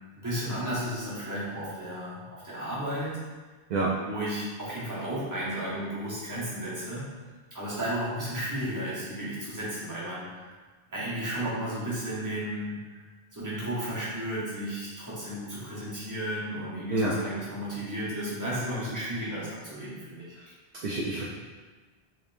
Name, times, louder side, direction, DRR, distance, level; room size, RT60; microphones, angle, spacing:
voice 1, 0.1-3.2 4.0-7.2 7.5-10.5 10.9-12.8 13.3-20.3, right 1 dB, 20° right, -9 dB, 1.1 m, -33 dB
voice 2, 20.8-21.3, right 2 dB, 55° right, -4 dB, 0.5 m, -27 dB
3.5 x 3.4 x 2.6 m, 1.3 s
omnidirectional pair, 1.0 m